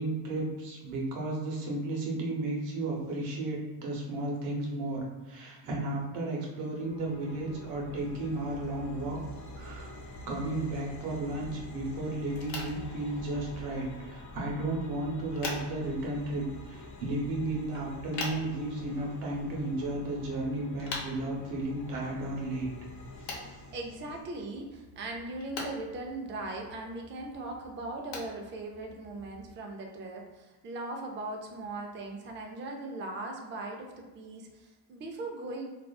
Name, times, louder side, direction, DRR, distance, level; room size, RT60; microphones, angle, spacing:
voice 1, 0.0-9.2 9.6-9.9 10.3-22.7 23.2-23.5, right 2 dB, 90° right, -2 dB, 0.8 m, -34 dB
sound 1, 6.8-24.2, left 2 dB, 35° left, 0.5 m, -46 dB
sound 2, 12.3-29.5, left 2 dB, 70° left, 0.9 m, -45 dB
voice 2, 23.7-35.7, right 2 dB, 25° right, 1 dB, 0.4 m, -39 dB
2.4 x 2.3 x 2.2 m, 1.2 s
supercardioid pair, 80°, 49 cm